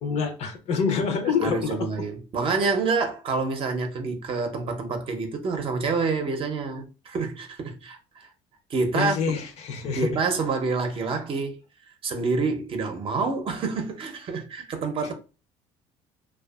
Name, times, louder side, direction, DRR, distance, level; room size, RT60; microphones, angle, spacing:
voice 1, 0.0-1.9 8.9-10.2, left 6 dB, 55° left, 0.6 m, -26 dB
voice 2, 1.4-8.3 8.7-9.3 10.0-11.6 12.0-15.1, right 4 dB, 40° right, 0.6 m, -27 dB
2.5 x 2.3 x 2.3 m
cardioid pair, 105°, 13 cm